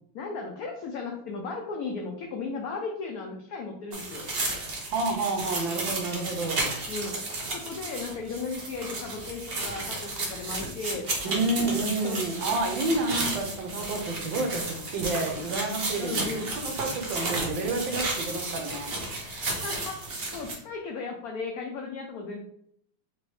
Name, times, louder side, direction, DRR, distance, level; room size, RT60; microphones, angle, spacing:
voice 1, 0.1-4.3 6.9-7.2 7.5-12.3 16.0-16.5 19.6-20.0 20.3-22.4, left 4 dB, 75° left, 1 dB, 0.8 m, -36 dB
sound 1, 3.9-20.6, right 2 dB, 60° right, 0.6 m, -33 dB
voice 2, 4.8-6.8 11.2-16.3 16.6-18.9, right 2 dB, 75° right, 3 dB, 1.5 m, -29 dB
3.9 x 3.0 x 3.1 m, 0.69 s
omnidirectional pair, 2.1 m